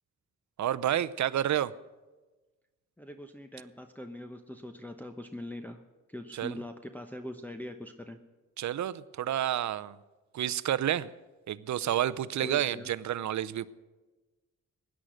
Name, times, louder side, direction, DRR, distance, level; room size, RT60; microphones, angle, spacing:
voice 1, 0.6-1.7 6.3-6.5 8.6-10.0 10.3-11.1 11.5-13.7, right 11 dB, 60° right, 15 dB, 0.6 m, -30 dB
voice 2, 3.0-5.8 6.1-8.2 12.4-12.9, left 1 dB, 5° left, 4 dB, 0.9 m, -42 dB
16.5 x 10.0 x 6.4 m, 1.2 s
cardioid pair, 75°, 32 cm